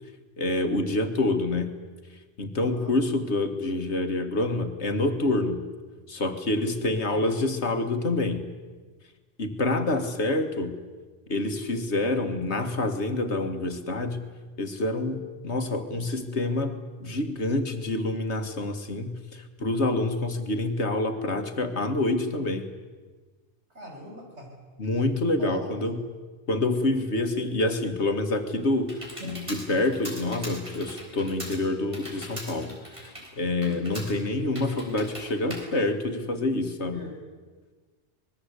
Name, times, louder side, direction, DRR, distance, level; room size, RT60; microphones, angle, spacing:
voice 1, 0.4-1.7 2.4-5.7 6.1-8.5 9.4-10.8 11.3-14.3 14.6-22.7 24.8-26.0 26.5-37.1, left 2 dB, 75° left, 7 dB, 2.2 m, -27 dB
voice 2, 2.6-2.9 7.1-7.3 9.8-10.1 23.7-24.5 25.4-25.9 29.2-29.3 33.6-33.9 36.9-37.2, equal, 80° right, 0 dB, 7.0 m, -41 dB
Computer keyboard, 28.1-36.6, equal, 25° right, 5.2 m, -42 dB
25.5 x 21.0 x 8.3 m, 1.4 s
omnidirectional pair, 1.1 m